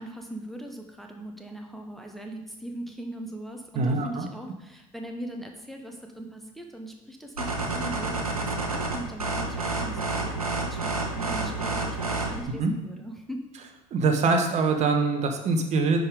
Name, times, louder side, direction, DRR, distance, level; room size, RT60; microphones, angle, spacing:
voice 1, 0.0-13.4, right 1 dB, ahead, 2 dB, 1.0 m, -40 dB
voice 2, 3.7-4.3 12.6-12.7 13.9-16.0, right 4 dB, 40° right, 5 dB, 1.2 m, -23 dB
sound 1, 7.4-12.4, right 3 dB, 85° right, 1.0 m, -29 dB
9.9 x 3.9 x 5.0 m, 0.96 s
figure-of-eight pair, 65°, 18 cm